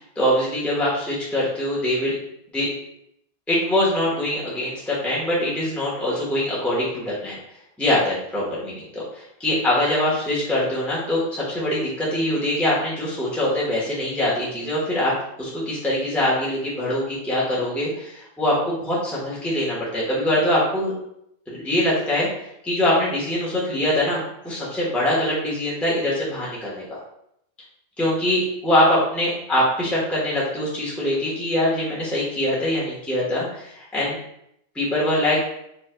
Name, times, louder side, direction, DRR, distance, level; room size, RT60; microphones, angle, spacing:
voice 1, 0.1-2.1 2.5-2.7 3.5-7.4 7.8-15.1 15.4-20.9 21.5-22.3 22.6-27.0 28.0-34.2 34.7-35.4, left 1 dB, ahead, -7 dB, 1.2 m, -23 dB
7.3 x 3.2 x 2.3 m, 0.76 s
omnidirectional pair, 1.4 m